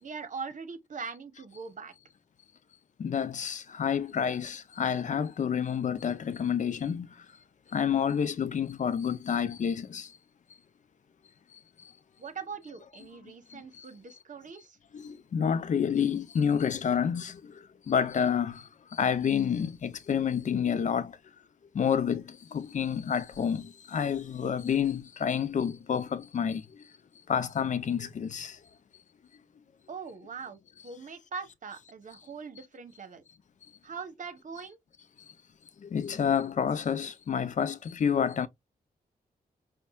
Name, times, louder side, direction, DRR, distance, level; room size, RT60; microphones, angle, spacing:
voice 1, 0.0-1.9 12.2-14.8 29.9-33.2 33.8-34.8, right 5 dB, 50° right, 0.9 m, -41 dB
voice 2, 3.0-7.1 7.7-10.1 13.5-13.8 14.9-17.4 17.9-18.6 18.9-21.1 21.7-26.6 27.3-28.6 35.8-38.5, left 7 dB, 50° left, 0.5 m, -29 dB
5.3 x 2.2 x 2.2 m
cardioid pair, 90°, 16 cm